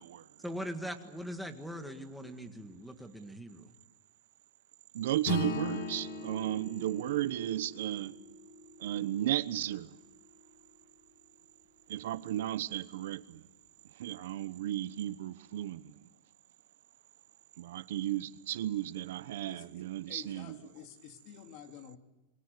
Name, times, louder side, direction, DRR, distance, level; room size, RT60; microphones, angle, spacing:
voice 1, 0.4-3.7, equal, ahead, 1.7 m, -41 dB
voice 2, 4.9-8.1 8.8-9.9 11.9-13.4 14.0-15.9 17.6-20.6, right 13 dB, 70° right, 1.0 m, -34 dB
Acoustic guitar / Strum, 5.2-10.0, left 2 dB, 55° left, 3.2 m, -39 dB
voice 3, 19.5-22.0, left 10 dB, 40° left, 2.3 m, -51 dB
28.0 x 23.0 x 6.8 m
supercardioid pair, 165°, 0 cm